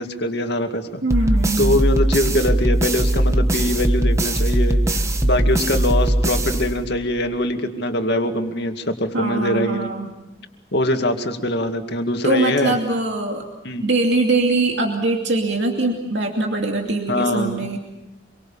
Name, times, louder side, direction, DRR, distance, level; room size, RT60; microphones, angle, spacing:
voice 1, 0.0-1.0 1.6-4.8 5.2-9.9 10.7-12.8 13.6-13.8 17.1-17.6, left 1 dB, 60° left, 5 dB, 2.3 m, -22 dB
voice 2, 1.0-1.8 9.1-10.1 12.2-13.5 13.8-17.8, right 2 dB, 65° right, 1 dB, 2.7 m, -22 dB
sound 1, 1.1-7.2, right 1 dB, 15° right, 1.2 m, -20 dB
26.0 x 24.0 x 7.1 m, 0.98 s
head